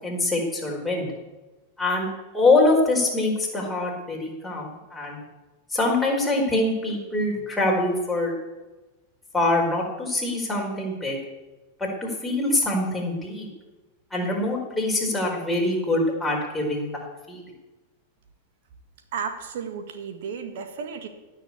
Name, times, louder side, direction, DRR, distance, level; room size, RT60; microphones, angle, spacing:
voice 1, 0.0-1.1 1.8-2.1 2.3-5.2 5.7-8.3 9.3-11.2 11.8-13.5 14.1-16.9 17.3-17.4, left 2 dB, 5° left, -3 dB, 4.8 m, -24 dB
voice 2, 19.1-21.1, right 6 dB, 55° right, 6 dB, 1.8 m, -33 dB
17.0 x 6.6 x 8.6 m, 1.2 s
figure-of-eight pair, 90°, 0 cm